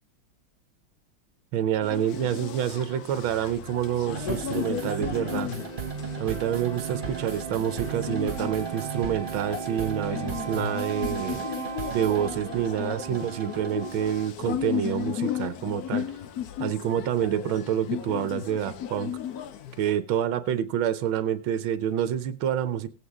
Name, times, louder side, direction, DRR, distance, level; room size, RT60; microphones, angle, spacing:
voice 1, 1.5-5.5 6.2-11.4 11.9-16.1 16.6-19.1 19.8-22.9, right 10 dB, 85° right, 12 dB, 1.6 m, -27 dB
sound 1, 1.8-19.9, left 9 dB, 60° left, 1.1 m, -35 dB
sound 2, 4.1-14.5, right 6 dB, 35° right, 0.9 m, -35 dB
17.5 x 8.2 x 3.6 m, 0.38 s
omnidirectional pair, 2.2 m